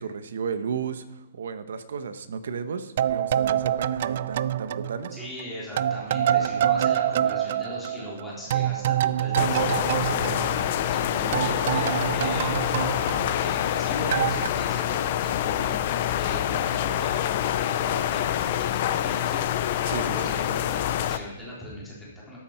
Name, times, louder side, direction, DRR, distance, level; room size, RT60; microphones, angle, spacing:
voice 1, 0.0-5.2 19.8-20.2, right 6 dB, 60° right, 11 dB, 1.1 m, -33 dB
sound 1, 3.0-5.4 5.8-11.0 11.3-13.8 14.1-14.5, right 10 dB, 35° right, 0.4 m, -26 dB
voice 2, 5.1-12.9 13.3-17.1 17.4-22.4, left 1 dB, 5° left, -8 dB, 3.8 m, -39 dB
sound 2, 9.3-21.2, left 11 dB, 30° left, 0.6 m, -26 dB
13.0 x 13.0 x 4.5 m, 1.0 s
hypercardioid pair, 180°, 0 cm